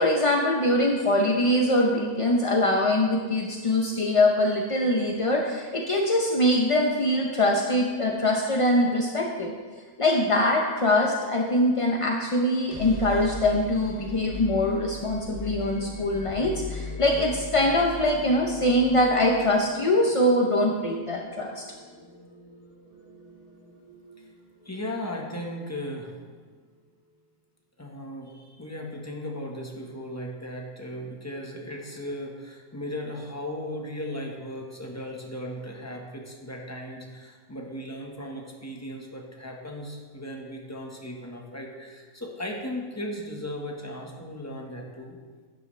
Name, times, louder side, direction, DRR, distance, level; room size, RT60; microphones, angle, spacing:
voice 1, 0.0-9.5 10.0-21.6, left 1 dB, 40° left, 0 dB, 0.5 m, -23 dB
sound 1, 12.5-26.3, left 2 dB, 10° right, 2.2 m, -41 dB
voice 2, 24.6-26.1 27.8-45.2, left 1 dB, 10° left, 0 dB, 1.2 m, -36 dB
11.5 x 9.2 x 3.3 m, 1.5 s
omnidirectional pair, 1.6 m